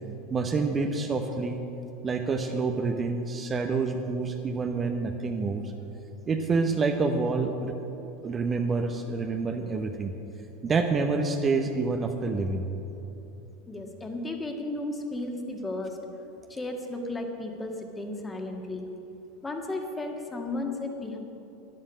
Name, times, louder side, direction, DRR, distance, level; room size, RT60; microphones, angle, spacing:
voice 1, 0.3-1.6 2.0-5.6 6.3-7.7 8.2-10.1 10.6-12.7, right 4 dB, 25° right, 4 dB, 0.9 m, -27 dB
voice 2, 13.7-16.0 16.5-18.9 19.4-21.2, left 2 dB, 15° left, 3 dB, 1.8 m, -34 dB
12.0 x 11.0 x 6.3 m, 3.0 s
figure-of-eight pair, 80°, 0 cm